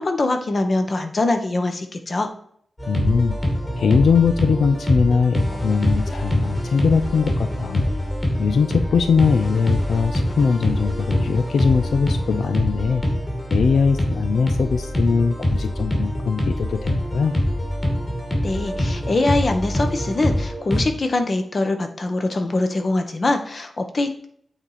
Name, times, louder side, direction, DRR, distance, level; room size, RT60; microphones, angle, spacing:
voice 1, 0.0-2.3 18.4-24.3, left 2 dB, 40° left, 6 dB, 1.2 m, -23 dB
sound 1, 2.8-20.8, equal, 20° left, 2.7 m, -24 dB
voice 2, 2.9-3.4 3.8-7.8 8.4-13.0 13.5-17.3, left 5 dB, 85° left, 9 dB, 0.5 m, -21 dB
8.8 x 4.2 x 4.9 m, 0.63 s
wide cardioid pair, 115°, 0 cm